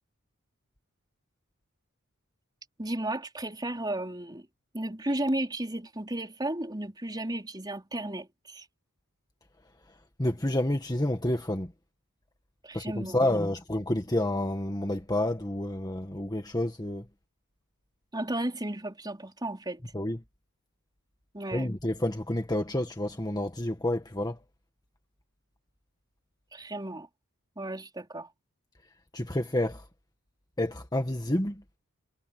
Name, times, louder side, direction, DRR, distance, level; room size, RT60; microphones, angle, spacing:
voice 1, 2.8-4.5 4.7-8.7 12.6-13.3 18.1-19.9 21.3-21.7 26.5-27.1 27.6-28.3, right 1 dB, 20° right, 4.2 m, -34 dB
voice 2, 10.2-11.7 12.7-12.9 13.1-17.1 19.9-20.2 21.5-24.4 29.1-29.8 30.6-31.6, left 1 dB, 20° left, 1.8 m, -29 dB
head